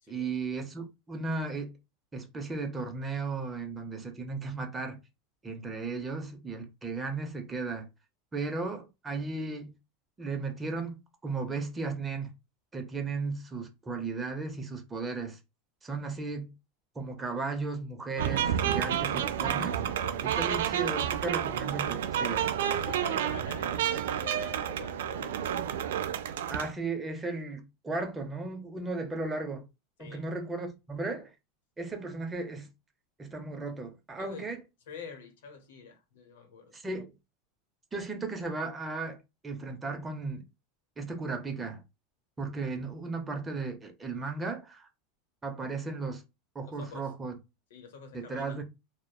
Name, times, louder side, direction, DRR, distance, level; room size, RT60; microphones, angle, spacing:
voice 1, 0.1-1.7 2.1-5.0 5.4-7.9 8.3-9.7 10.2-12.3 12.7-15.4 15.8-16.5 16.9-19.8 20.2-22.5 26.5-29.7 30.0-31.3 31.8-32.7 33.2-34.6 36.7-37.1 37.9-39.2 39.4-40.4 41.0-41.8 42.4-44.9 45.4-46.2 46.5-47.3 48.1-48.6, right 3 dB, 15° right, 0.6 m, -35 dB
sound 1, 18.2-26.7, right 9 dB, 90° right, 0.3 m, -30 dB
voice 2, 22.8-25.3 30.0-30.3 34.2-34.5 34.9-36.8 46.7-47.1 47.7-48.6, left 6 dB, 85° left, 0.8 m, -46 dB
2.8 x 2.1 x 2.2 m
supercardioid pair, 140°, 0 cm